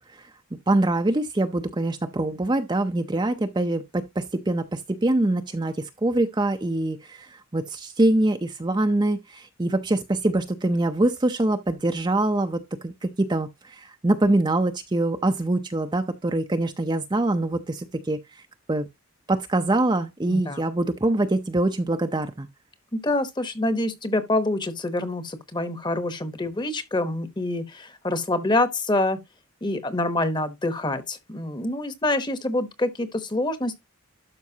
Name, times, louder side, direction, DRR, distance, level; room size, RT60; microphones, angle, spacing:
voice 1, 0.7-18.2 18.7-18.9 19.3-22.5, right 2 dB, 20° right, 0.5 m, -24 dB
voice 2, 20.3-20.6 22.9-29.2 29.6-33.8, left 2 dB, 20° left, 0.9 m, -26 dB
12.0 x 5.1 x 2.8 m
head